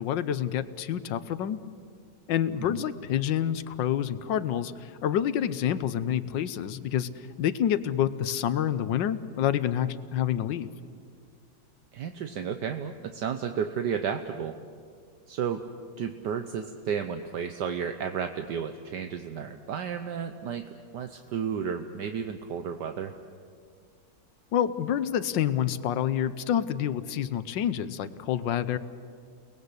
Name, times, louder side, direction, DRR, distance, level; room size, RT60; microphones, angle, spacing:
voice 1, 0.0-1.6 2.3-7.1 7.4-10.7 24.5-28.8, left 10 dB, 80° left, 13 dB, 1.6 m, -28 dB
voice 2, 11.9-14.6 15.3-15.6 16.0-23.1, right 7 dB, 70° right, 7 dB, 1.5 m, -32 dB
30.0 x 19.5 x 8.2 m, 2.1 s
omnidirectional pair, 1.9 m